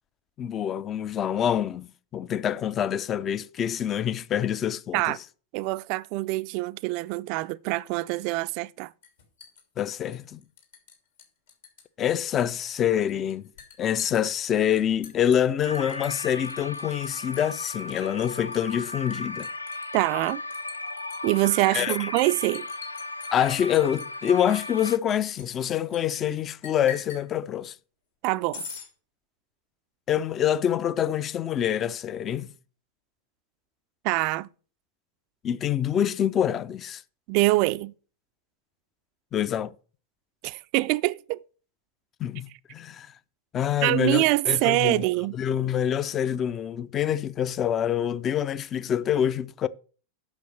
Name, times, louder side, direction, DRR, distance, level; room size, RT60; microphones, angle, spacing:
voice 1, 0.4-5.2 9.8-10.4 12.0-13.4 13.8-19.5 21.7-22.0 23.3-27.8 30.1-32.5 35.4-37.0 39.3-39.7 42.2-43.1 43.5-45.0 45.3-49.7, left 9 dB, 30° left, 0.5 m, -26 dB
voice 2, 5.5-8.9 19.9-20.4 21.2-22.7 28.2-28.6 34.0-34.5 37.3-37.9 40.4-41.4 43.8-45.4, right 21 dB, 45° right, 0.4 m, -25 dB
Liquid, 9.0-10.9 11.2-11.8 12.1-26.0 26.6-27.3 28.5-28.9, left 6 dB, 65° left, 2.7 m, -44 dB
sound 1, 15.6-25.0, left 3 dB, 80° left, 0.4 m, -36 dB
8.1 x 6.3 x 6.4 m
figure-of-eight pair, 90°, 0 cm